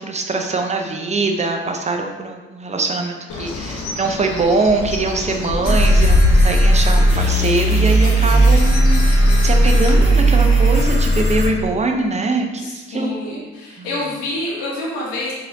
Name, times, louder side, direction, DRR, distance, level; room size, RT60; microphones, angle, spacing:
voice 1, 0.0-13.4 13.8-13.9, right 3 dB, 20° right, 3 dB, 0.5 m, -22 dB
Bird, 3.3-9.9, left 3 dB, 55° left, 0.7 m, -24 dB
sound 1, 5.7-11.5, right 1 dB, 15° left, 1.5 m, -15 dB
voice 2, 12.6-15.3, left 1 dB, 80° left, -4 dB, 0.9 m, -27 dB
4.0 x 2.7 x 2.5 m, 1.2 s
hypercardioid pair, 40°, 35 cm